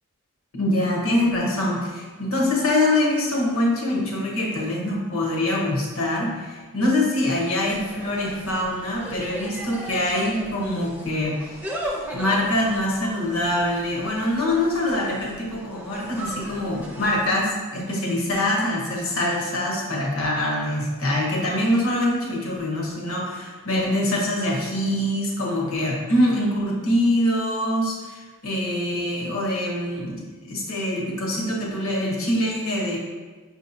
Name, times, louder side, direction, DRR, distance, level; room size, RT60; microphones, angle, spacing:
voice 1, 0.5-11.6 12.1-33.0, left 1 dB, 65° left, -2 dB, 0.9 m, -24 dB
Insect, 7.6-17.4, right 1 dB, 10° right, 0.4 m, -37 dB
5.9 x 2.8 x 2.6 m, 1.4 s
head